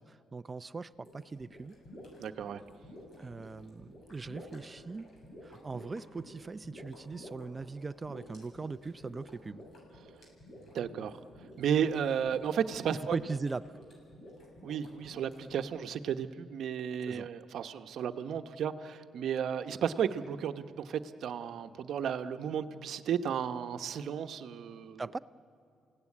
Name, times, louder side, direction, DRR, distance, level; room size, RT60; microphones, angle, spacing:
voice 1, 0.0-1.8 3.2-5.1 5.4-9.6 13.1-13.6 17.1-17.3 25.0-25.2, right 4 dB, 25° right, 15 dB, 0.5 m, -40 dB
sound 1, 0.9-15.6, left 1 dB, 50° left, 7.7 m, -51 dB
voice 2, 2.2-2.6 10.7-11.2 11.6-13.2 14.6-25.0, right 8 dB, 70° right, 9 dB, 1.0 m, -33 dB
28.5 x 17.5 x 9.8 m, 2.5 s
cardioid pair, 90°, 0 cm